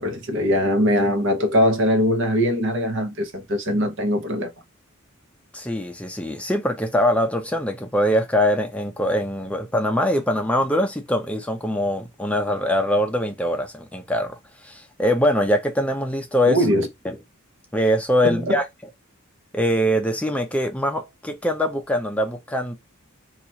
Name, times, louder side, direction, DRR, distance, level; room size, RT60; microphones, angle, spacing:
voice 1, 0.0-4.5 16.5-16.9 18.2-18.6, equal, 60° right, 0.9 m, -21 dB
voice 2, 5.5-14.4 14.6-16.6 17.0-17.2 17.7-18.6 19.5-22.8, equal, 5° left, 0.5 m, -23 dB
2.9 x 2.4 x 4.0 m
head